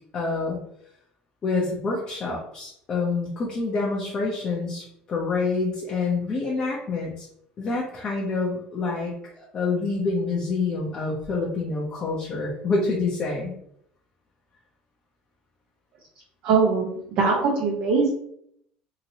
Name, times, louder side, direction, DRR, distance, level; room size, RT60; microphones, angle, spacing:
voice 1, 0.1-0.6 1.4-7.3 7.6-13.5, left 3 dB, 30° left, -4 dB, 0.7 m, -27 dB
voice 2, 16.4-18.1, right 4 dB, 55° right, -2 dB, 0.8 m, -22 dB
2.9 x 2.8 x 2.8 m, 0.71 s
cardioid pair, 150°, 3 cm